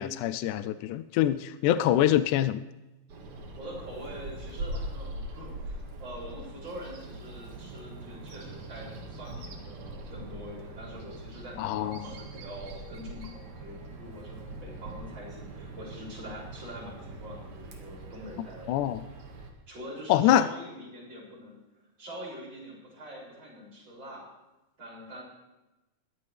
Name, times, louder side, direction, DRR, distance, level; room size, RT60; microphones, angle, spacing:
voice 1, 0.0-2.6 11.6-12.0 18.7-19.0 20.1-20.5, left 12 dB, 80° left, 12 dB, 1.8 m, -25 dB
Bird vocalization bird call bird song, 3.1-19.5, right 1 dB, 60° right, 3.1 m, -42 dB
voice 2, 3.6-18.8 19.7-21.6 22.0-24.2 24.8-25.2, equal, 30° right, -5 dB, 7.2 m, -44 dB
21.5 x 15.5 x 3.4 m, 1.0 s
omnidirectional pair, 4.1 m